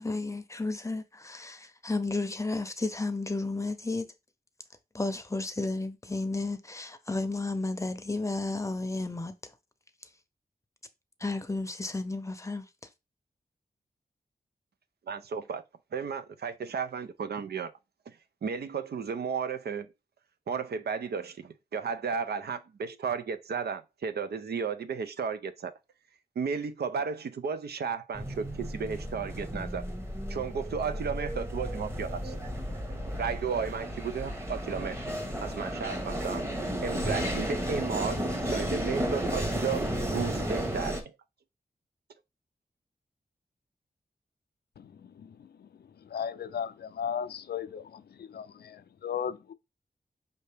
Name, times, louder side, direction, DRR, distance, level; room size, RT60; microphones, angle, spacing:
voice 1, 0.0-4.0 4.9-9.3 11.2-12.6, left 3 dB, 20° left, 0.6 m, -32 dB
voice 2, 15.1-15.6 15.9-17.7 18.1-18.2 18.4-19.9 20.5-25.7 26.4-29.8 30.3-32.3 33.2-35.0 35.4-36.4 36.8-39.8 40.1-41.1, right 6 dB, 80° right, 0.5 m, -34 dB
sound 1, 28.1-41.0, equal, 15° right, 1.1 m, -33 dB
voice 3, 46.1-47.8 48.3-48.4 49.0-49.5, left 8 dB, 75° left, 0.4 m, -34 dB
5.5 x 2.8 x 3.3 m
wide cardioid pair, 75°, 16 cm